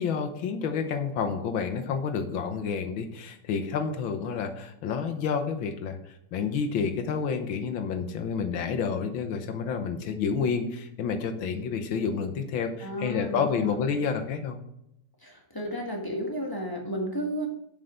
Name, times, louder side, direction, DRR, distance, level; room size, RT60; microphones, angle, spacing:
voice 1, 0.0-14.6, left 6 dB, 80° left, 6 dB, 1.7 m, -29 dB
voice 2, 12.8-13.8 15.2-17.5, equal, 15° left, 0 dB, 1.1 m, -33 dB
7.7 x 5.6 x 5.1 m, 0.78 s
omnidirectional pair, 2.2 m